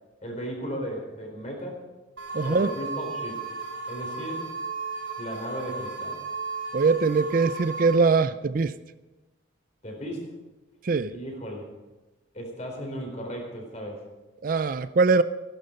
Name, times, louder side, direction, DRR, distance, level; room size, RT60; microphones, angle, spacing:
voice 1, 0.2-1.8 2.4-3.4 3.9-4.5 5.2-6.2 9.8-10.3 11.0-11.6 12.3-14.0, equal, 35° left, 1 dB, 4.2 m, -35 dB
sound 1, 2.2-8.0, right 4 dB, 90° right, 3.4 m, -35 dB
voice 2, 2.3-2.7 6.7-8.7 10.8-11.1 14.4-15.2, right 4 dB, 45° right, 13 dB, 0.4 m, -22 dB
16.0 x 12.0 x 5.2 m, 1.1 s
head